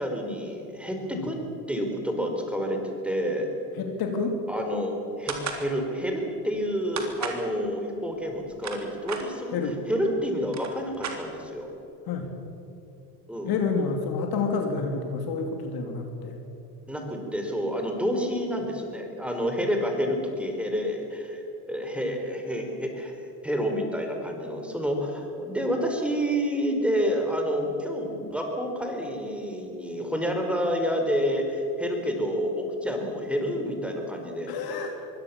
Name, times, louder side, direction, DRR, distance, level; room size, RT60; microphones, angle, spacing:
voice 1, 0.0-1.4 1.7-2.8 3.0-3.5 4.5-9.6 9.9-11.7 13.3-13.5 16.9-23.2 23.4-34.5, equal, ahead, 3 dB, 4.5 m, -29 dB
voice 2, 3.8-4.4 9.5-9.8 12.1-12.3 13.5-16.4 34.5-35.1, left 4 dB, 50° left, 4 dB, 2.9 m, -29 dB
sound 1, 5.3-5.7 7.0-7.4 8.3-9.3 10.1-10.2 10.4-11.6, right 6 dB, 35° right, 3.5 m, -34 dB
23.5 x 17.0 x 7.1 m, 3.0 s
hypercardioid pair, 85°, 48 cm